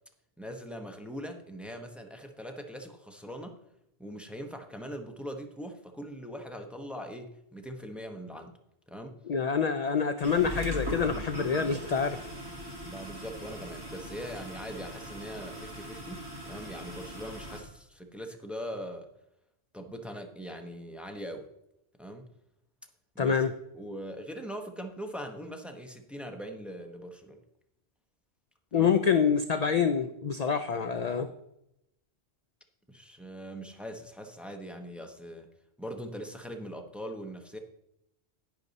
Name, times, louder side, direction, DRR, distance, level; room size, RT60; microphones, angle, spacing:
voice 1, 0.4-3.6 4.0-8.6 8.9-9.1 12.7-19.1 19.7-21.5 22.0-22.3 23.1-23.4 23.7-27.4 28.7-28.9 32.9-35.5 35.8-37.6, equal, ahead, 4 dB, 0.9 m, -41 dB
voice 2, 9.3-12.3 23.2-23.5 28.7-31.3, left 6 dB, 50° left, 9 dB, 0.5 m, -26 dB
sound 1, 10.2-17.6, equal, 20° right, 2.4 m, -40 dB
10.5 x 9.1 x 4.1 m, 0.83 s
omnidirectional pair, 1.1 m